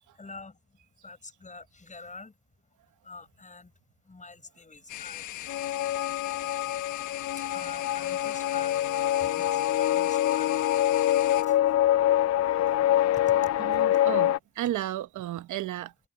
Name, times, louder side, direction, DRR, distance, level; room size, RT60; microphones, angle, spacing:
voice 1, 0.1-2.4 3.0-3.7 4.0-5.8 7.4-11.0 11.4-11.7 12.2-13.8, left 3 dB, 25° left, 7.7 m, -48 dB
sound 1, 4.9-11.4, left 14 dB, 85° left, 1.2 m, -39 dB
sound 2, 5.5-14.4, left 12 dB, 60° left, 0.6 m, -25 dB
voice 2, 13.6-15.9, right 13 dB, 75° right, 1.1 m, -33 dB
cardioid pair, 90°, 30 cm